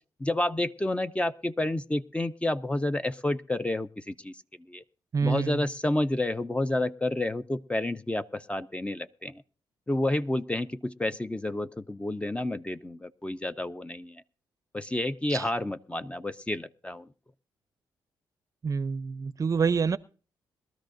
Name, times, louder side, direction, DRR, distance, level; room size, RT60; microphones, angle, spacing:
voice 1, 0.2-4.4 4.7-4.8 5.2-9.4 9.9-14.2 14.7-17.1, left 1 dB, 15° left, 0.5 m, -30 dB
voice 2, 5.1-5.6 15.3-15.5 18.6-20.0, right 5 dB, 40° right, 0.6 m, -27 dB
22.0 x 13.0 x 2.6 m
cardioid pair, 70°, 9 cm